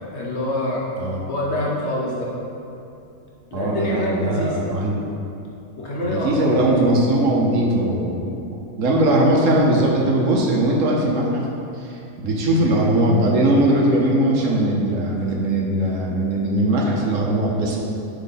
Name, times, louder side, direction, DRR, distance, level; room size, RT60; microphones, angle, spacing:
voice 1, 0.0-0.8 1.3-2.3 3.5-4.7 5.8-6.6, left 1 dB, 50° left, -5 dB, 1.1 m, -25 dB
voice 2, 1.0-1.3 3.5-5.0 6.0-8.3 8.8-11.4 11.8-17.8, right 1 dB, 65° right, -2 dB, 1.1 m, -20 dB
7.5 x 3.6 x 3.9 m, 2.7 s
omnidirectional pair, 1.5 m